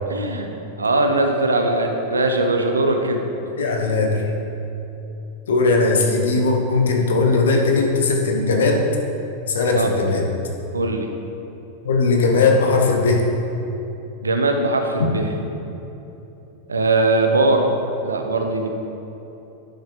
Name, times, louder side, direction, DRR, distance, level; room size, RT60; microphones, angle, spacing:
voice 1, 0.1-0.5 0.8-3.2 9.7-9.9 10.7-11.1 14.2-15.3 16.7-17.7 18.0-18.7, right 2 dB, 75° right, 4 dB, 0.7 m, -20 dB
voice 2, 3.6-4.2 5.5-8.8 9.5-10.3 11.8-13.3 15.0-15.1, left 3 dB, 65° left, 1 dB, 1.0 m, -18 dB
10.0 x 6.0 x 3.2 m, 3.0 s
figure-of-eight pair, 90°, 0 cm